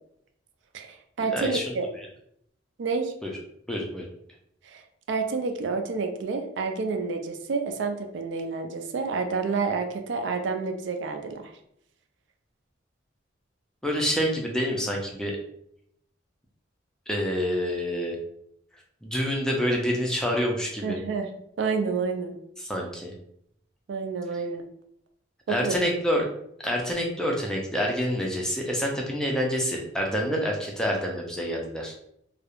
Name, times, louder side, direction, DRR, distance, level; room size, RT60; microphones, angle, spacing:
voice 1, 0.7-1.8 2.8-3.1 4.6-11.5 20.8-21.3 21.6-22.4 23.9-24.6 25.5-25.8, right 4 dB, 70° right, 5 dB, 0.3 m, -29 dB
voice 2, 1.3-1.6 2.0-2.1 3.2-3.3 3.7-4.1 13.8-15.4 17.1-18.2 19.0-21.0 22.6-23.1 25.5-26.2 26.6-31.9, equal, 5° left, -1 dB, 0.3 m, -27 dB
2.3 x 2.0 x 2.9 m, 0.72 s
head